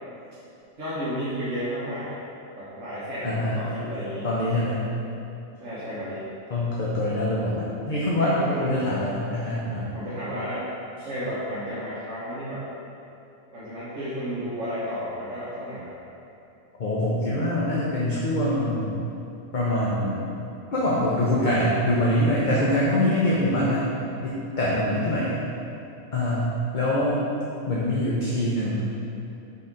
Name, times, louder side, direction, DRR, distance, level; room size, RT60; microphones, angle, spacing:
voice 1, 0.8-2.2 2.6-4.3 5.6-6.3 8.2-8.7 9.9-10.7 11.0-12.6 13.5-16.0 24.8-25.2, equal, 65° right, -11 dB, 1.7 m, -32 dB
voice 2, 3.2-3.7 4.2-4.8 6.5-9.9 16.8-19.0 19.5-20.2 20.7-23.9 24.2-25.4 26.1-27.2 27.7-28.9, left 1 dB, 40° left, -6 dB, 0.8 m, -24 dB
5.8 x 4.1 x 5.1 m, 2.7 s
omnidirectional pair, 1.4 m